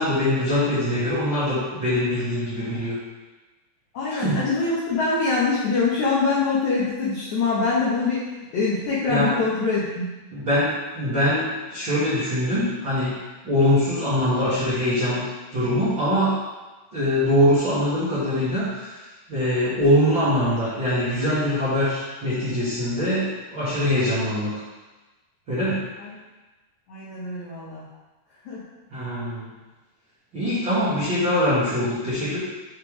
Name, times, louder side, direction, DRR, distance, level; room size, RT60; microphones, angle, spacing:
voice 1, 0.0-3.0 4.1-4.4 9.1-9.3 10.3-10.7 10.9-13.1 13.4-15.2 15.5-16.3 16.9-19.0 19.3-23.3 23.5-24.5 25.5-25.8 28.9-29.5 30.3-32.4, left 1 dB, 50° right, -13 dB, 1.4 m, -23 dB
voice 2, 3.9-8.2 8.5-10.1 26.0-26.1 26.9-27.8 28.4-28.6, left 4 dB, 75° left, -8 dB, 1.7 m, -24 dB
7.3 x 3.4 x 4.8 m, 1.2 s
omnidirectional pair, 5.0 m